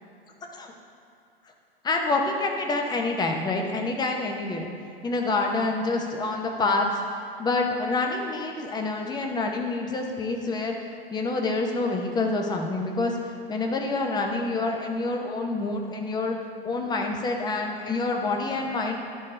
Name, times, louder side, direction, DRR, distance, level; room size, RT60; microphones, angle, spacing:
voice 1, 1.8-4.7 5.0-7.0 7.4-10.8 11.1-16.4 16.6-19.0, left 3 dB, 15° left, 2 dB, 0.8 m, -27 dB
11.5 x 4.5 x 3.2 m, 2.5 s
hypercardioid pair, 110°, 30 cm